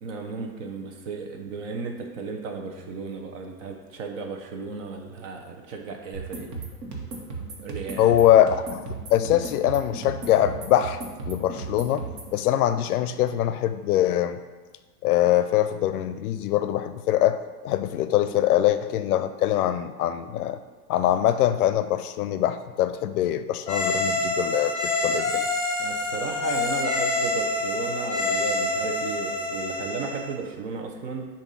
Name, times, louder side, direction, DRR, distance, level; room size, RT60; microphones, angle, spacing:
voice 1, 0.0-6.5 7.6-8.1 25.8-31.3, right 4 dB, 50° right, 3 dB, 1.0 m, -34 dB
sound 1, 6.1-12.3, right 3 dB, 70° right, 1.5 m, -36 dB
voice 2, 8.0-11.0 11.3-14.4 15.0-20.6 20.9-25.5, left 12 dB, 65° left, 11 dB, 0.5 m, -23 dB
sound 2, 23.7-30.3, left 2 dB, 15° left, 0.8 m, -27 dB
7.0 x 2.7 x 5.4 m, 1.3 s
supercardioid pair, 160°, 48 cm